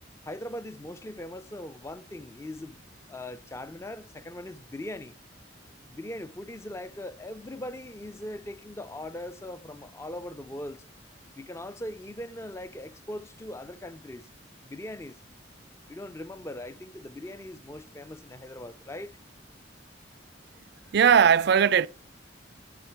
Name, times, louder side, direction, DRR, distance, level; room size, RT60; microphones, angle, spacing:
voice 1, 0.2-2.8 3.1-5.1 5.9-10.8 11.4-14.3 14.6-15.2 15.9-19.2, left 1 dB, 15° left, 0.4 m, -40 dB
voice 2, 20.9-21.9, right 7 dB, 60° right, 0.4 m, -18 dB
11.0 x 5.9 x 5.8 m
head